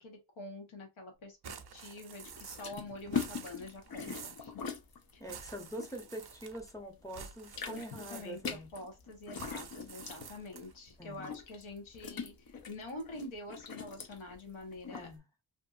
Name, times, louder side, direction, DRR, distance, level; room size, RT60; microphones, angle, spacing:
voice 1, 0.0-1.4 1.7-4.5 5.1-5.2 7.6-15.1, left 2 dB, 75° left, 1.0 m, -46 dB
sound 1, 1.4-2.8 3.0-4.5 5.2-6.7 7.1-8.6 9.3-10.8, right 7 dB, 55° right, 0.5 m, -49 dB
sound 2, 2.2-6.8 7.1-15.1, left 6 dB, 50° left, 0.5 m, -42 dB
voice 2, 5.2-8.7 11.0-11.3 14.9-15.2, equal, 5° left, 0.6 m, -44 dB
2.6 x 2.6 x 2.3 m
wide cardioid pair, 90°, 49 cm